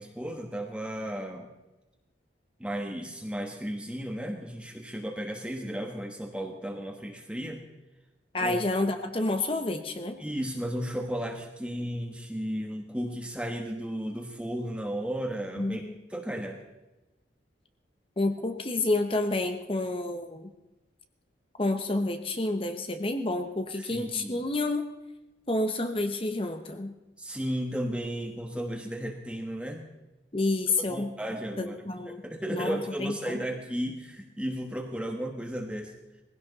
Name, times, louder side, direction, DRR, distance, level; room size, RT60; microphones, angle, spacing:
voice 1, 0.0-1.5 2.6-7.6 8.4-8.6 10.2-16.6 23.7-24.5 27.2-29.8 30.8-31.8 32.0-35.9, equal, 5° right, 2 dB, 1.2 m, -34 dB
voice 2, 8.3-10.2 15.6-15.9 18.2-20.5 21.6-24.9 25.5-26.9 30.3-31.1 31.6-32.2 32.5-33.4, left 2 dB, 30° left, 6 dB, 0.9 m, -29 dB
20.0 x 16.5 x 4.1 m, 1.0 s
head